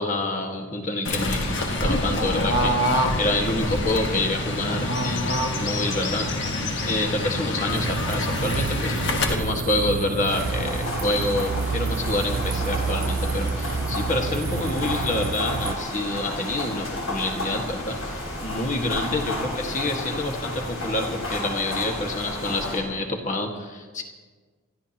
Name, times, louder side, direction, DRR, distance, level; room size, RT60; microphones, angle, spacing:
voice 1, 0.0-6.3 6.9-24.0, left 2 dB, 35° left, 2 dB, 1.7 m, -28 dB
Fowl / Bird, 1.0-9.3, left 1 dB, 55° left, 1.7 m, -25 dB
sound 1, 7.7-15.7, right 4 dB, 50° right, 0.5 m, -29 dB
sound 2, 10.3-22.8, left 1 dB, 70° left, 4.6 m, -32 dB
28.5 x 13.5 x 3.0 m, 1.4 s
head